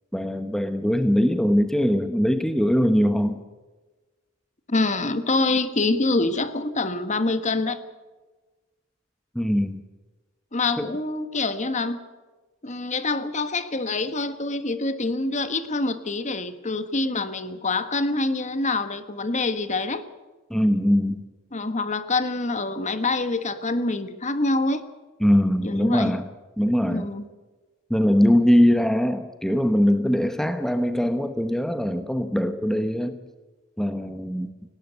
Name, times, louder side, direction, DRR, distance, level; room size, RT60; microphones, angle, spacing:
voice 1, 0.1-3.4 9.3-9.8 10.8-10.9 20.5-21.2 25.2-26.3 26.6-27.1 27.9-33.2 33.8-34.5, equal, ahead, 9 dB, 1.0 m, -21 dB
voice 2, 4.7-7.8 10.5-12.0 12.6-20.0 21.5-24.8 25.6-26.1 26.8-27.2, left 3 dB, 35° left, 11 dB, 1.5 m, -26 dB
18.5 x 18.0 x 8.2 m, 1.2 s
head